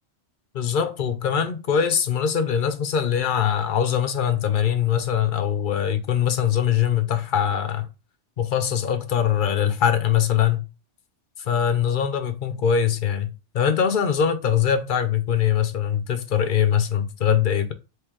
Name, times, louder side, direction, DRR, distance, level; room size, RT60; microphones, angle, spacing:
voice 1, 0.5-7.9 8.4-10.6 11.4-17.7, left 8 dB, 50° left, 0.7 m, -22 dB
3.7 x 3.1 x 4.5 m
omnidirectional pair, 1.2 m